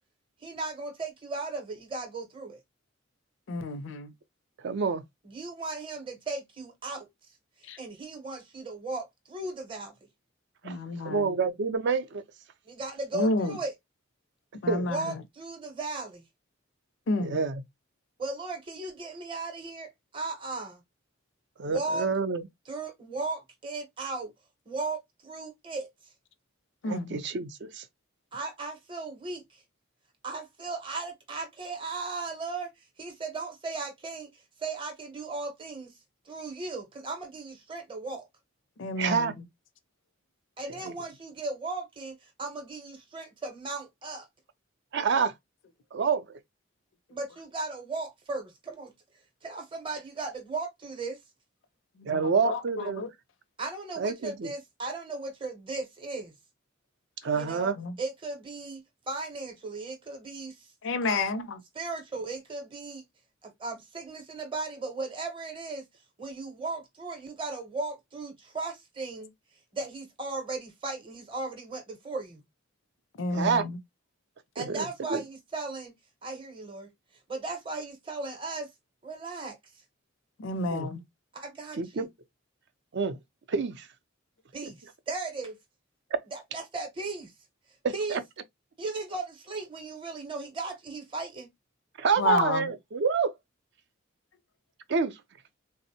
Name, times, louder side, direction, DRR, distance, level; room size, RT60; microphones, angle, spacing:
voice 1, 0.4-2.6 5.2-7.1 7.8-9.9 12.7-13.7 14.8-16.2 18.2-20.8 21.6-22.1 22.7-24.3 24.7-25.9 28.3-29.6 30.2-32.7 33.0-34.3 34.6-35.9 36.3-38.3 40.6-44.3 47.1-48.9 49.4-51.2 53.6-56.3 57.3-57.7 58.0-60.7 61.0-61.3 61.7-63.0 63.4-65.8 66.2-69.3 69.7-72.4 74.5-75.9 76.2-76.9 77.3-78.7 79.0-79.6 81.3-82.1 84.5-85.6 86.3-87.3 87.9-88.2 88.8-91.5, right 3 dB, 25° right, 0.7 m, -36 dB
voice 2, 3.5-4.1 7.6-7.8 10.6-11.3 13.1-13.6 14.6-15.2 17.1-17.4 26.8-27.2 38.8-39.4 45.0-45.1 52.0-53.1 57.8-57.9 60.8-61.6 73.2-73.8 80.4-81.0 92.2-92.7, left 3 dB, 60° left, 0.4 m, -30 dB
voice 3, 4.6-5.0 10.6-10.7 11.0-12.2 14.7-14.9 17.2-17.6 21.6-22.5 26.8-27.8 39.0-39.3 40.8-40.9 44.9-45.3 45.9-46.4 52.1-53.0 54.0-54.5 57.2-57.8 73.3-73.7 74.6-75.2 80.7-80.9 81.8-82.1 82.9-83.2 83.5-83.9 84.6-84.7 87.8-88.2 92.0-93.3 94.9-95.2, right 5 dB, 55° right, 0.4 m, -28 dB
3.4 x 2.0 x 2.6 m
head